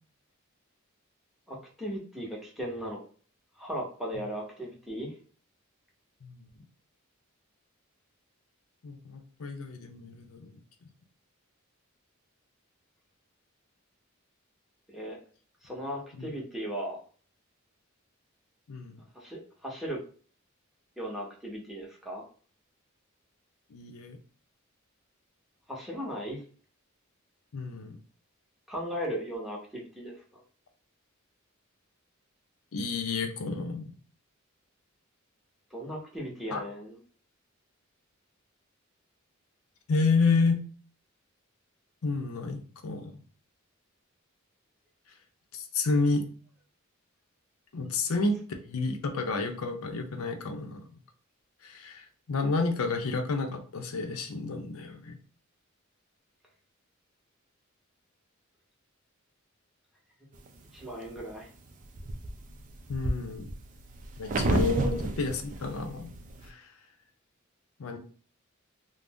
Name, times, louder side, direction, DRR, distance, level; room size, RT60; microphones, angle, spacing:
voice 1, 1.5-3.0 3.6-5.1 14.9-15.2 15.6-17.0 19.1-20.0 21.0-22.2 25.7-26.4 28.7-30.4 35.7-37.0 60.7-61.5, equal, ahead, -2 dB, 0.7 m, -37 dB
voice 2, 8.8-10.6 16.2-16.3 18.7-19.0 23.7-24.2 27.5-28.0 32.7-33.9 36.5-36.6 39.9-40.6 42.0-43.2 45.5-46.3 47.7-50.9 51.6-55.2 62.9-63.5 64.2-66.1 66.4-66.7 67.8-68.0, left 3 dB, 90° left, 5 dB, 0.5 m, -30 dB
sound 1, 60.5-61.2 61.7-66.5, right 2 dB, 40° right, 0.4 m, -31 dB
2.5 x 2.0 x 3.4 m, 0.42 s
head